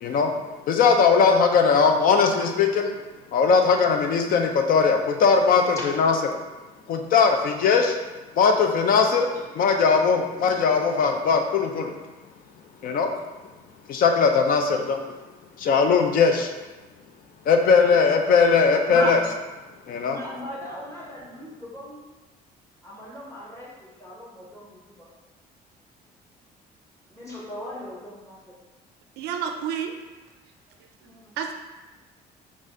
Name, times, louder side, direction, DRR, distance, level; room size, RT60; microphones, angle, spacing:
voice 1, 0.0-0.3 0.7-2.9 3.3-6.1 6.9-8.0 8.4-11.9 12.8-13.1 13.9-15.0 15.6-16.5 17.5-19.2 19.9-20.2, left 5 dB, 55° left, 4 dB, 0.5 m, -19 dB
voice 2, 5.7-6.1 9.3-9.4 18.9-19.2 20.0-22.1 22.8-24.9 27.1-28.4 31.0-31.4, equal, 20° left, -5 dB, 1.3 m, -37 dB
voice 3, 29.2-30.0 31.4-31.5, right 8 dB, 80° right, 4 dB, 0.4 m, -29 dB
4.0 x 2.4 x 3.7 m, 1.2 s
cardioid pair, 110°, 17 cm